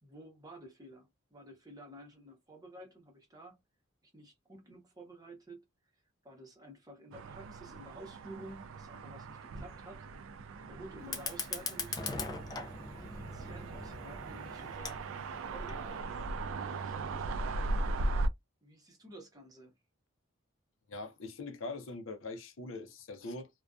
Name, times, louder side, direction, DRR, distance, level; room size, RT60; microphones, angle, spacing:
voice 1, 0.0-3.6 4.0-5.6 5.9-10.1 10.7-12.6 13.0-17.8 18.6-19.7, right 1 dB, 20° right, 0.7 m, -52 dB
sound 1, 7.1-18.3, right 2 dB, 70° right, 0.3 m, -38 dB
Fire, 11.0-16.0, left 4 dB, 20° left, 0.3 m, -41 dB
voice 2, 20.9-23.5, left 3 dB, 65° left, 0.5 m, -42 dB
2.5 x 2.2 x 2.3 m
head